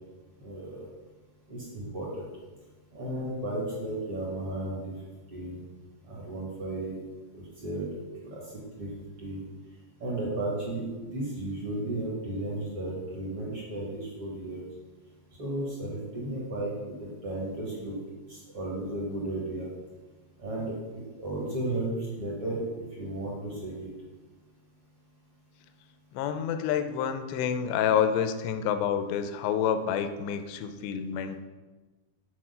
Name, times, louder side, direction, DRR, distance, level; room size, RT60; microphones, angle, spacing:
voice 1, 0.4-0.8 1.5-2.3 2.9-4.9 5.3-5.6 6.1-6.9 7.3-7.8 8.2-8.4 8.7-8.9 9.2-9.4 10.0-14.6 15.4-18.0 18.3-19.7 20.4-20.8 21.2-23.9, right 1 dB, 55° right, -4 dB, 1.5 m, -34 dB
voice 2, 26.1-31.4, left 8 dB, 85° left, 9 dB, 2.8 m, -28 dB
8.6 x 4.4 x 5.6 m, 1.3 s
omnidirectional pair, 4.9 m